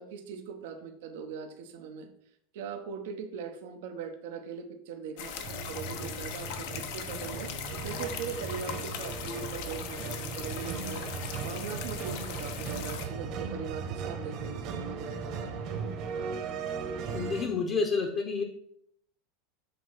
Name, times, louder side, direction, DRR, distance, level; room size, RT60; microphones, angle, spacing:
voice 1, 0.0-2.1 2.5-7.5 7.8-11.1 11.4-15.6, right 6 dB, 75° right, 6 dB, 0.9 m, -40 dB
sound 1, 5.2-13.1, left 8 dB, 70° left, 0.9 m, -39 dB
sound 2, 5.4-17.4, right 5 dB, 50° right, 1.2 m, -37 dB
voice 2, 17.1-18.4, left 4 dB, 35° left, 3 dB, 0.9 m, -29 dB
6.8 x 3.1 x 5.7 m, 0.70 s
supercardioid pair, 125°, 0 cm